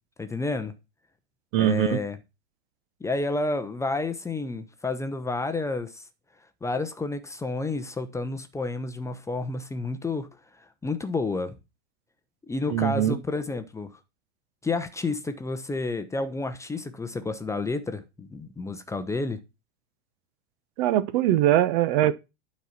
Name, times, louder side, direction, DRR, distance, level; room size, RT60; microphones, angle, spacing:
voice 1, 0.2-0.7 1.6-2.2 3.0-6.1 6.6-11.6 12.5-13.9 14.6-19.4, left 3 dB, 10° left, 0.7 m, -30 dB
voice 2, 1.5-2.0 12.7-13.2 20.8-22.1, right 12 dB, 45° right, 0.8 m, -22 dB
9.2 x 4.2 x 5.7 m
hypercardioid pair, 105°, 34 cm